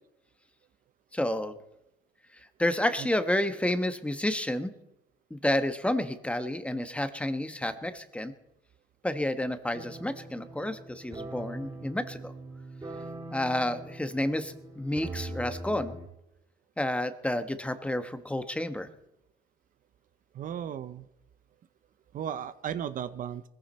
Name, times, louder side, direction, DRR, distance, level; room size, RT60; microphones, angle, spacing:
voice 1, 1.1-1.5 2.6-4.7 5.3-8.3 9.0-12.3 13.3-16.0 16.8-18.9, left 1 dB, 5° left, 9 dB, 1.2 m, -30 dB
sound 1, 9.7-16.1, right 2 dB, 20° right, 4.6 m, -42 dB
voice 2, 20.3-21.1 22.1-23.4, right 9 dB, 50° right, 13 dB, 0.8 m, -35 dB
20.5 x 15.0 x 4.3 m, 0.85 s
cardioid pair, 110°, 17 cm